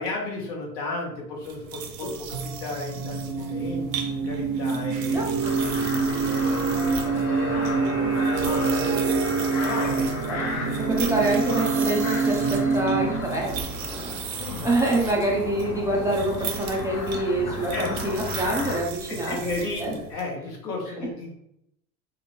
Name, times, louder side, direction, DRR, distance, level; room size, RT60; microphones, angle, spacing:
voice 1, 0.0-10.1 10.6-11.1 14.4-14.7 17.5-17.9 19.1-21.3, left 2 dB, 65° left, -1 dB, 1.4 m, -35 dB
Yo-Yo, 1.4-20.3, right 7 dB, 80° right, 0.7 m, -37 dB
sound 1, 2.3-13.7, right 4 dB, 45° right, 0.7 m, -26 dB
voice 2, 5.1-5.6 10.3-10.4 10.8-19.4 19.8-20.0 21.0-21.1, right 2 dB, 5° right, -3 dB, 0.5 m, -26 dB
sound 2, 5.4-18.8, left 4 dB, 35° left, 0.8 m, -35 dB
5.3 x 2.1 x 3.0 m, 0.78 s
figure-of-eight pair, 80°, 50 cm